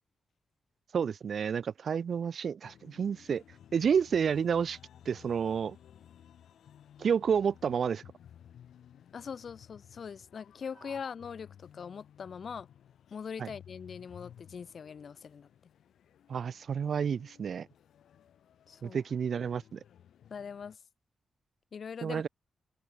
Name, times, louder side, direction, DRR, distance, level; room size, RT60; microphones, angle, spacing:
voice 1, 0.9-3.4 3.7-4.8 5.1-5.8 7.0-8.0 13.4-13.5 16.3-17.7 18.8-19.8 22.0-22.3, right 7 dB, 60° right, 0.7 m, -30 dB
sound 1, 2.6-20.8, left 9 dB, 85° left, 3.9 m, -57 dB
voice 2, 9.1-12.7 13.1-15.5 18.7-19.0 20.3-20.8 21.7-22.2, left 6 dB, 55° left, 2.3 m, -42 dB
cardioid pair, 105°, 0 cm